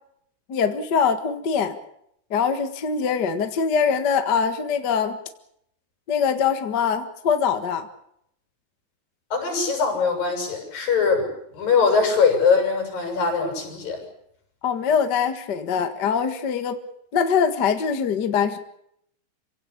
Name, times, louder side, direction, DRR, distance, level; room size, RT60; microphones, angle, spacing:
voice 1, 0.5-1.7 2.3-5.2 6.1-7.9 14.6-16.8 17.1-18.6, left 6 dB, 40° left, 8 dB, 1.8 m, -23 dB
voice 2, 9.3-14.0, left 5 dB, 85° left, 4 dB, 8.6 m, -22 dB
27.0 x 17.5 x 8.5 m, 0.74 s
omnidirectional pair, 3.9 m